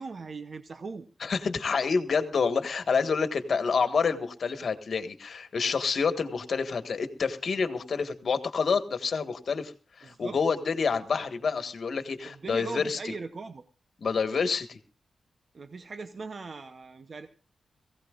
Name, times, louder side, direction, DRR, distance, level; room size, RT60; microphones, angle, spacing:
voice 1, 0.0-1.1 10.0-10.4 12.2-13.7 15.5-17.3, right 4 dB, 45° right, 9 dB, 0.7 m, -40 dB
voice 2, 1.2-9.7 10.0-13.1 14.0-14.8, left 5 dB, 55° left, 9 dB, 1.5 m, -28 dB
22.0 x 16.5 x 2.5 m, 0.34 s
wide cardioid pair, 150°, 0 cm